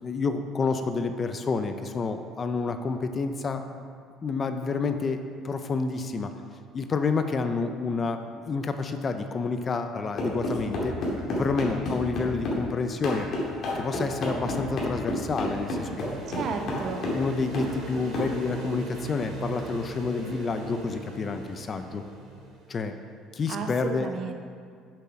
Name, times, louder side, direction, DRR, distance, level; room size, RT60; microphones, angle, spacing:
voice 1, 0.0-3.6 4.2-6.3 6.7-11.0 11.3-13.3 13.7-16.1 17.1-22.0 22.7-22.9 23.3-24.1, left 4 dB, 25° left, 7 dB, 0.4 m, -29 dB
sound 1, 10.2-12.6 13.0-17.3 17.5-17.7 18.1-18.3, left 1 dB, 45° left, 2.2 m, -30 dB
sound 2, 14.4-22.8, right 2 dB, 70° right, 2.0 m, -40 dB
voice 2, 16.3-17.0 23.5-24.3, right 5 dB, 45° right, 5 dB, 0.8 m, -33 dB
7.7 x 7.3 x 5.8 m, 2.1 s
cardioid pair, 160°, 0 cm